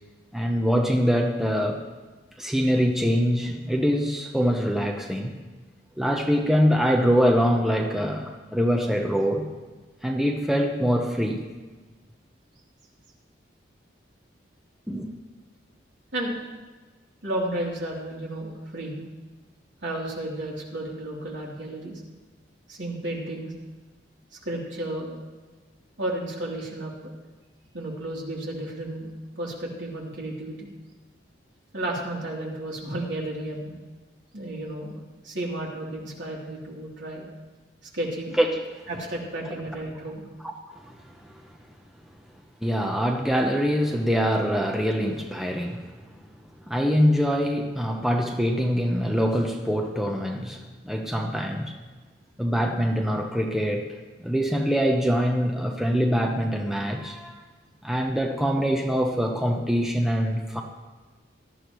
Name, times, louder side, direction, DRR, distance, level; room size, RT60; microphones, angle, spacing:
voice 1, 0.3-1.8 2.4-5.3 6.0-9.5 10.0-11.4 14.9-15.1 38.4-38.5 40.4-40.5 40.8-40.9 41.3-41.4 42.6-45.9 46.7-51.8 52.4-53.9 54.2-57.4 57.8-60.6, equal, ahead, 1 dB, 0.8 m, -24 dB
voice 2, 17.2-19.0 19.8-22.0 22.7-23.5 24.4-25.1 26.0-27.1 27.7-29.1 29.4-30.7 31.7-33.7 34.3-34.9 35.2-37.2 37.9-38.4 38.9-40.2, right 1 dB, 70° right, -3 dB, 3.3 m, -32 dB
18.0 x 13.0 x 3.1 m, 1.3 s
head